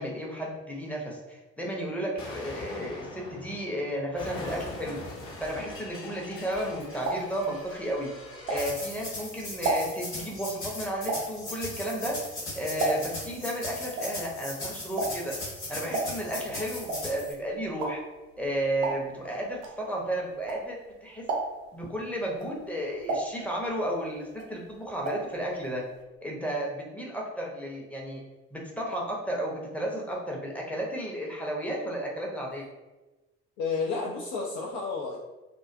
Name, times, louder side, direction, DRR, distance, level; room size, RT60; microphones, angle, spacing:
voice 1, 0.0-5.0 5.4-8.1 8.5-12.2 12.5-15.3 15.7-18.0 18.4-21.3 21.7-25.8 26.2-28.2 28.5-32.7, right 1 dB, 5° left, -2 dB, 0.6 m, -33 dB
Explosion, 2.2-8.8, left 2 dB, 40° left, 0.8 m, -42 dB
sound 1, 6.5-9.0 9.4-13.3 13.6-20.9 21.2-21.8 22.3-24.0 24.3-25.4 25.6-25.7 26.0-26.1, right 2 dB, 70° right, 0.6 m, -33 dB
sound 2, 8.5-17.3, left 2 dB, 90° left, 0.8 m, -38 dB
voice 2, 33.6-35.2, left 4 dB, 65° left, -2 dB, 0.5 m, -31 dB
2.4 x 2.2 x 2.5 m, 1.1 s
figure-of-eight pair, 50°, 34 cm